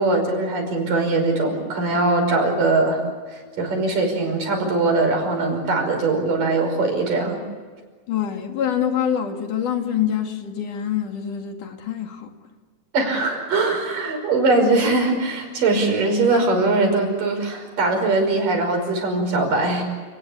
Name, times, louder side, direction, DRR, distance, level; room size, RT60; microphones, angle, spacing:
voice 1, 0.0-3.0 3.3-7.4 12.9-19.8, right 3 dB, 75° right, 7.1 m, -21 dB
voice 2, 8.1-12.3, left 9 dB, 70° left, 3.7 m, -25 dB
30.0 x 19.5 x 8.6 m
omnidirectional pair, 3.8 m